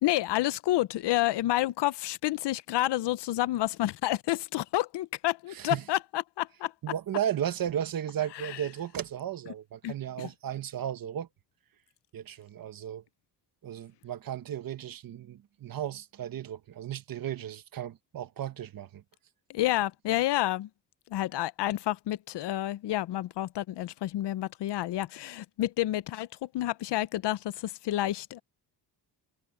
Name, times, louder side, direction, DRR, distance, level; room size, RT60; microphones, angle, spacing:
voice 1, 0.0-6.7 8.4-8.5 9.8-9.9 19.5-20.7 21.1-28.4, left 15 dB, 80° left, 0.7 m, -29 dB
voice 2, 5.5-5.9 6.8-11.3 12.1-13.0 13.6-19.0, right 10 dB, 55° right, 1.2 m, -35 dB
wide cardioid pair, 160°, 41 cm